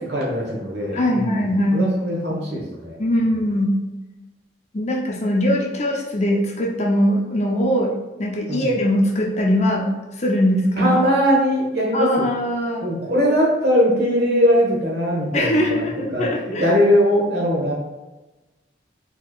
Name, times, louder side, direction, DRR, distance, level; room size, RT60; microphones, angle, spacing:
voice 1, 0.0-1.4 1.7-3.0 8.5-8.7 10.8-12.2 12.8-16.3 16.6-17.7, equal, 65° right, -3 dB, 1.2 m, -20 dB
voice 2, 0.9-1.9 2.3-2.4 3.0-3.8 4.7-9.9 10.2-10.9 11.9-12.8 15.3-16.6, equal, 40° left, -1 dB, 0.6 m, -21 dB
4.5 x 3.0 x 2.4 m, 1.1 s
head